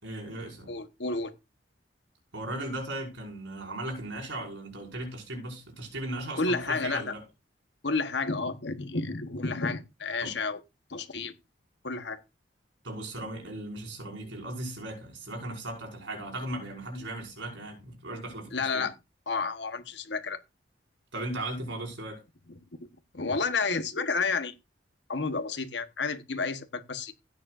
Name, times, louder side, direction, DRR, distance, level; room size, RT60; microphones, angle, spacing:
voice 1, 0.0-0.7 2.3-7.2 10.2-10.3 12.8-18.9 21.1-22.2, right 1 dB, 85° right, 5.6 m, -37 dB
voice 2, 0.7-1.3 6.4-7.1 7.8-10.6 10.9-11.3 11.8-12.2 18.5-18.9 19.3-20.4 22.8-22.9 23.1-24.5 25.1-27.1, left 4 dB, 70° left, 1.2 m, -31 dB
16.0 x 9.6 x 2.6 m
head